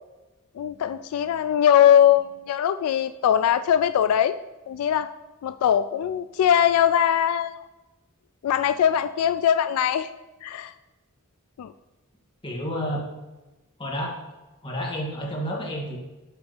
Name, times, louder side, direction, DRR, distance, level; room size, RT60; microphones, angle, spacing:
voice 1, 0.6-4.4 4.7-5.1 5.4-7.6 8.4-10.1 10.4-10.7 11.6-11.7, left 9 dB, 85° left, 14 dB, 0.3 m, -21 dB
voice 2, 12.4-13.1 13.8-14.2 14.6-16.0, equal, 25° left, -2 dB, 1.7 m, -30 dB
8.1 x 3.4 x 6.6 m, 1.1 s
head